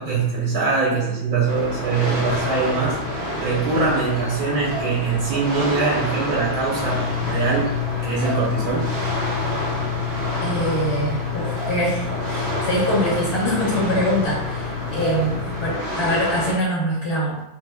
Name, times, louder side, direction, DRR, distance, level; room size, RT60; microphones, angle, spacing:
voice 1, 0.0-3.0 3.4-7.7 8.0-8.9, right 4 dB, 85° right, -5 dB, 1.2 m, -22 dB
sound 1, 1.5-16.5, equal, 55° right, 0.8 m, -29 dB
sound 2, 6.8-15.8, left 13 dB, 70° left, 1.2 m, -29 dB
voice 2, 10.4-17.4, equal, 50° left, -5 dB, 1.2 m, -24 dB
2.8 x 2.1 x 3.3 m, 0.94 s
omnidirectional pair, 1.6 m